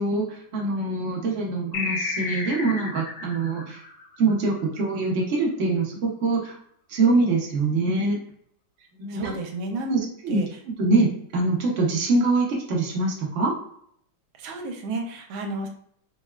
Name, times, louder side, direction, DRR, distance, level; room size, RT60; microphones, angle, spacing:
voice 1, 0.0-3.8 4.2-6.6 6.9-8.2 9.0-9.3 9.9-10.4 10.8-13.5, right 3 dB, 60° right, -2 dB, 0.7 m, -24 dB
sound 1, 1.7-4.7, left 3 dB, 75° left, 1.4 m, -32 dB
voice 2, 8.8-10.5 14.4-15.7, right 2 dB, 80° right, 4 dB, 1.4 m, -32 dB
3.9 x 2.2 x 2.2 m, 0.67 s
omnidirectional pair, 2.3 m